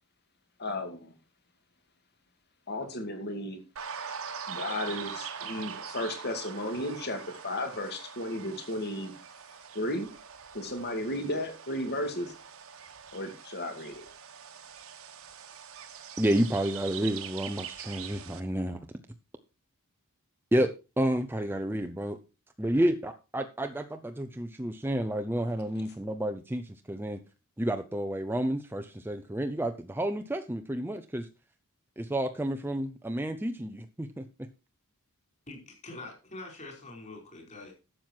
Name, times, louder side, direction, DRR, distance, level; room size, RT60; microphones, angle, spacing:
voice 1, 0.6-1.1 2.7-3.6 4.5-9.1 9.7-10.1 10.5-12.3 13.1-14.0, left 1 dB, 50° left, 5 dB, 2.4 m, -34 dB
sound 1, 3.8-18.4, right 7 dB, 65° right, 1.4 m, -43 dB
voice 2, 16.2-18.8 20.5-22.2 22.6-27.2 27.6-31.3 32.0-34.5, right 1 dB, 10° right, 6 dB, 0.6 m, -30 dB
voice 3, 35.5-37.7, left 2 dB, 30° left, 1 dB, 4.9 m, -44 dB
12.0 x 7.7 x 4.6 m, 0.30 s
head